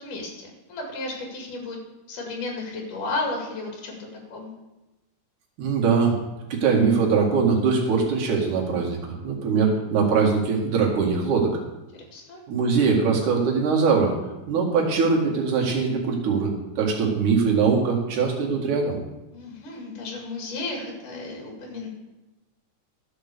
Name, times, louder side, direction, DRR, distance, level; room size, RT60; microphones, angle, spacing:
voice 1, 0.0-1.8 2.1-4.0 4.3-4.5 12.1-12.4 19.3-21.9, left 2 dB, 85° left, 0 dB, 3.8 m, -33 dB
voice 2, 5.6-6.2 6.5-11.6 12.5-14.1 14.5-19.0, right 5 dB, 75° right, -2 dB, 3.5 m, -22 dB
12.5 x 6.0 x 6.7 m, 1.0 s
omnidirectional pair, 3.6 m